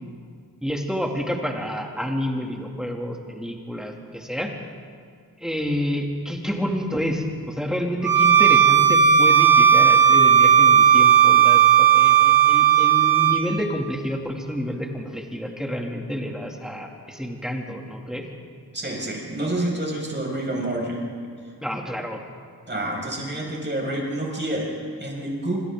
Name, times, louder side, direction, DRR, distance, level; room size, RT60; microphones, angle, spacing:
voice 1, 0.6-4.5 5.4-18.2 21.6-22.2, equal, ahead, 0 dB, 2.5 m, -29 dB
Bowed string instrument, 8.0-13.4, right 8 dB, 65° right, 4.6 m, -15 dB
voice 2, 18.7-21.0 22.7-25.6, right 1 dB, 30° right, -2 dB, 5.8 m, -28 dB
27.0 x 26.0 x 3.8 m, 2.2 s
wide cardioid pair, 130°, 38 cm